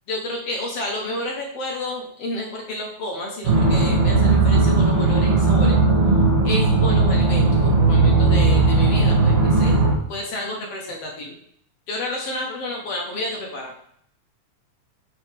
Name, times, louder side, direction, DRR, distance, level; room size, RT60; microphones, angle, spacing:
voice 1, 0.1-5.8 6.4-9.8 10.1-11.3 11.9-13.7, left 1 dB, 60° left, 0 dB, 1.7 m, -30 dB
sound 1, 3.4-9.9, right 3 dB, 50° right, 1.6 m, -17 dB
7.5 x 5.5 x 3.4 m, 0.66 s
omnidirectional pair, 3.9 m